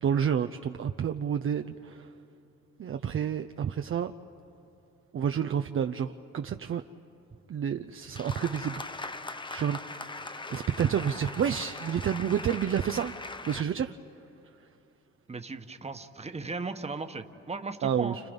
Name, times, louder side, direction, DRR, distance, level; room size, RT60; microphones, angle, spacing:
voice 1, 0.0-2.1 2.8-4.1 5.1-6.8 7.5-8.8 9.5-10.1 10.5-13.1 13.4-13.9 17.8-18.1, right 8 dB, 45° right, 7 dB, 0.6 m, -29 dB
sound 1, 8.2-13.6, left 3 dB, 15° left, 0.8 m, -40 dB
voice 2, 15.3-18.2, right 3 dB, 20° right, 7 dB, 1.3 m, -37 dB
30.0 x 29.5 x 5.4 m, 2.9 s
cardioid pair, 90°, 30 cm